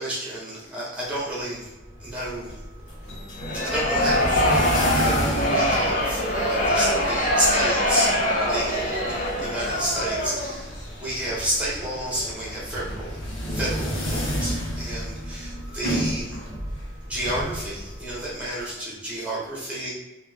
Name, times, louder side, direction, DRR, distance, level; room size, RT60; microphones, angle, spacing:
voice 1, 0.0-1.7 2.0-2.6 3.5-13.2 13.5-16.4 17.0-19.9, right 1 dB, 5° right, -7 dB, 1.2 m, -30 dB
sound 1, 1.6-18.7, equal, 85° left, 1.2 m, -32 dB
sound 2, 3.4-10.6, left 1 dB, 40° left, 0.8 m, -23 dB
3.3 x 2.7 x 3.4 m, 1.0 s
head